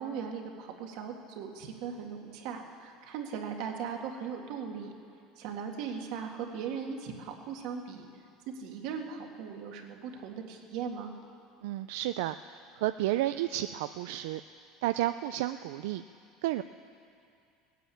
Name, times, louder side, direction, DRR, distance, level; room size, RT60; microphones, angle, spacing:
voice 1, 0.0-4.9 5.4-8.0 8.6-11.1, right 6 dB, 65° right, 2 dB, 1.9 m, -38 dB
voice 2, 11.6-14.4 14.8-16.0 16.4-16.6, right 14 dB, 85° right, 11 dB, 0.3 m, -32 dB
18.5 x 9.3 x 8.5 m, 2.4 s
cardioid pair, 145°, 0 cm